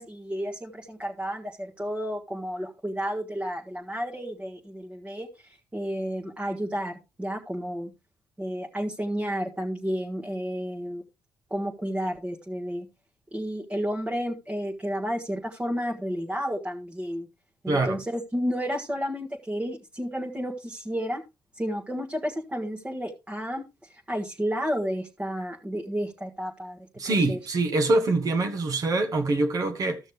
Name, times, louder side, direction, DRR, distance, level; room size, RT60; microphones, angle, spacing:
voice 1, 0.0-7.9 8.4-11.0 11.5-12.9 13.3-17.3 17.6-21.2 21.5-26.8 27.0-27.4, equal, 15° right, 1.4 m, -31 dB
voice 2, 17.7-18.0 27.0-30.0, right 2 dB, 50° right, 1.2 m, -24 dB
14.0 x 6.3 x 3.2 m
cardioid pair, 85°, 8 cm